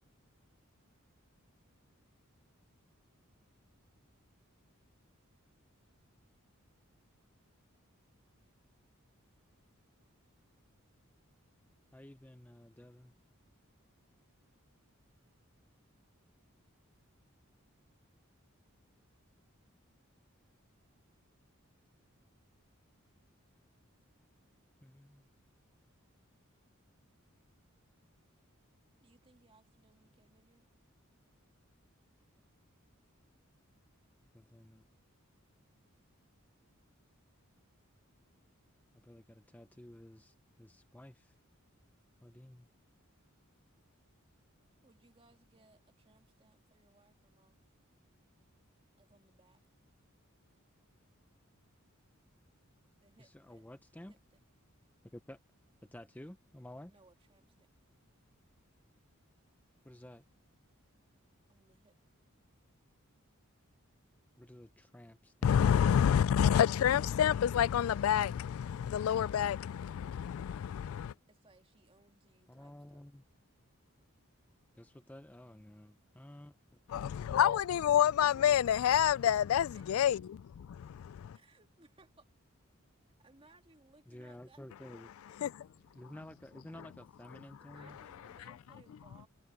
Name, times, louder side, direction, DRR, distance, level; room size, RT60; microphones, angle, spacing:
voice 1, 11.9-13.1 24.8-25.2 32.4-32.5 34.3-34.8 38.9-41.3 42.2-42.7 53.2-54.1 55.1-55.4 55.9-56.9 59.8-60.2 64.4-65.6 72.5-73.2 74.7-76.8 78.2-78.6 84.1-85.1 85.9-88.0, left 1 dB, 10° left, 0.6 m, -52 dB
voice 2, 29.0-30.7 44.8-47.6 48.9-49.6 53.0-53.6 53.9-54.4 56.9-57.7 61.5-61.9 71.3-73.0 79.7-80.1 81.3-82.3 83.2-84.6 87.6-89.3, right 3 dB, 25° right, 2.0 m, -65 dB
voice 3, 65.4-71.1 76.9-81.4 85.4-85.7, left 9 dB, 75° left, 0.3 m, -28 dB
head